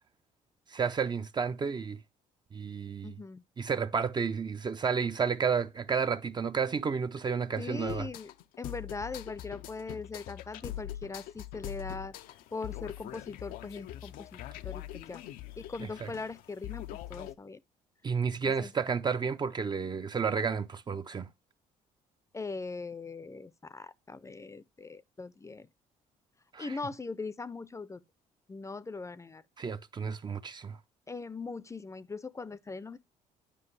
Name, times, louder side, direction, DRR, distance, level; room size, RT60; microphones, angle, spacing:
voice 1, 0.7-2.0 2.5-3.1 3.6-8.1 16.0-16.1 18.0-21.3 26.5-26.7 29.6-30.8, right 6 dB, 30° right, 0.5 m, -31 dB
voice 2, 3.0-3.4 7.6-8.3 8.6-12.1 12.5-15.2 15.6-17.6 18.4-18.7 22.3-25.7 26.6-28.0 28.5-29.4 31.1-33.0, left 4 dB, 20° left, 0.5 m, -40 dB
sound 1, 7.9-17.4, left 13 dB, 80° left, 0.5 m, -43 dB
9.9 x 5.2 x 3.2 m
supercardioid pair, 85°, 15 cm